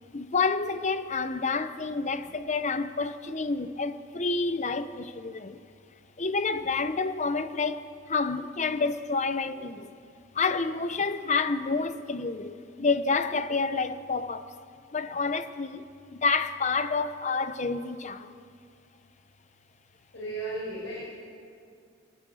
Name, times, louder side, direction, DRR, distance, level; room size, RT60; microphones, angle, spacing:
voice 1, 0.1-5.6 6.2-10.0 10.3-14.5 14.9-15.8 16.1-18.4, left 4 dB, 35° left, 0.7 m, -29 dB
voice 2, 20.1-21.1, right 2 dB, 70° left, 5.8 m, -35 dB
21.0 x 19.5 x 6.4 m
head